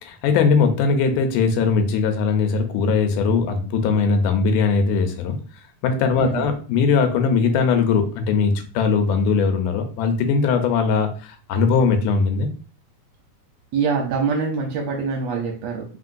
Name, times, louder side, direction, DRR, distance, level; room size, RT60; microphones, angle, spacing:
voice 1, 0.0-5.4 5.8-12.5, left 5 dB, 85° left, 7 dB, 2.1 m, -20 dB
voice 2, 6.1-6.5 13.7-15.8, right 5 dB, 75° right, 1 dB, 1.6 m, -24 dB
4.2 x 3.7 x 2.5 m, 0.38 s
omnidirectional pair, 3.6 m